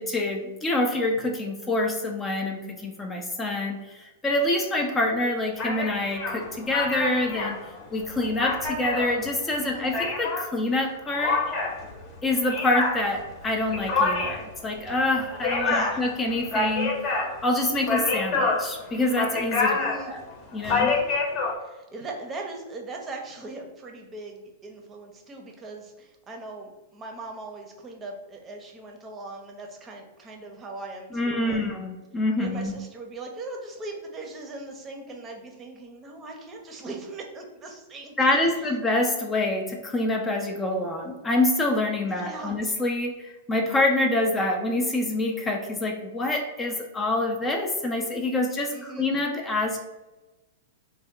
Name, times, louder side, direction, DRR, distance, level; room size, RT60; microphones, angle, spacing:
voice 1, 0.0-7.6 7.9-11.5 12.2-17.0 17.4-20.2 20.5-20.9 31.1-32.7 38.2-49.8, left 2 dB, 20° left, 2 dB, 0.5 m, -26 dB
sound 1, 5.6-10.5 11.2-21.5, left 3 dB, 40° left, 0.9 m, -27 dB
voice 2, 9.6-9.9 15.6-16.0 19.7-20.1 21.0-21.2 21.6-31.7 32.4-38.7 42.1-42.6 48.7-49.1, right 2 dB, 20° right, 2 dB, 0.7 m, -39 dB
3.5 x 2.2 x 3.7 m, 1.1 s
hypercardioid pair, 115°, 0 cm